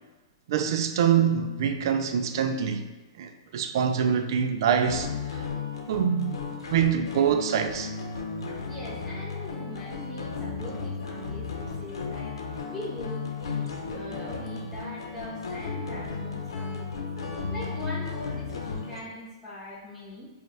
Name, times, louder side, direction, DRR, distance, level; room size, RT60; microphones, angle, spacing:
voice 1, 0.5-2.9 3.2-5.4 5.9-6.4 6.7-7.9, right 8 dB, 60° right, 0.4 m, -25 dB
sound 1, 4.9-19.0, left 5 dB, 80° left, 0.8 m, -34 dB
voice 2, 8.7-20.3, left 1 dB, ahead, 1.0 m, -41 dB
5.1 x 2.4 x 3.3 m
hypercardioid pair, 130°, 3 cm